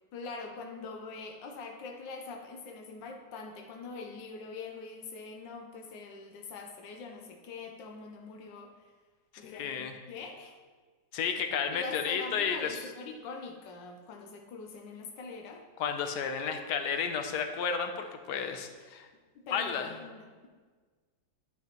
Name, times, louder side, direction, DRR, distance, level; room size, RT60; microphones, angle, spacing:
voice 1, 0.1-8.9 9.4-10.6 11.7-15.6 19.3-20.5, left 4 dB, 90° left, 3 dB, 1.4 m, -43 dB
voice 2, 9.4-10.0 11.1-12.9 15.8-19.1 19.5-19.9, left 6 dB, 70° left, 7 dB, 1.2 m, -32 dB
10.0 x 5.7 x 3.0 m, 1.4 s
omnidirectional pair, 1.9 m